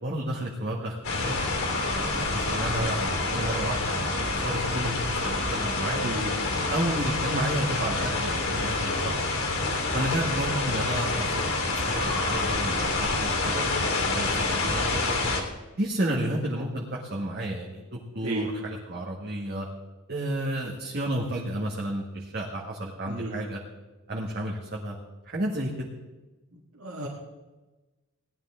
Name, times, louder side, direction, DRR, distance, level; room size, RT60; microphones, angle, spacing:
voice 1, 0.0-1.4 1.9-6.1 6.7-9.3 9.9-13.6 14.0-15.3 15.7-17.8 18.1-19.7 20.1-23.6 24.1-25.0 25.2-25.9, right 1 dB, 50° right, -3 dB, 1.7 m, -31 dB
sound 1, 1.0-15.4, left 3 dB, 75° left, 2.8 m, -27 dB
voice 2, 6.0-6.3 18.2-18.5 23.1-23.4 26.8-27.1, right 1 dB, 80° right, -4 dB, 1.9 m, -32 dB
17.5 x 11.5 x 3.7 m, 1.2 s
head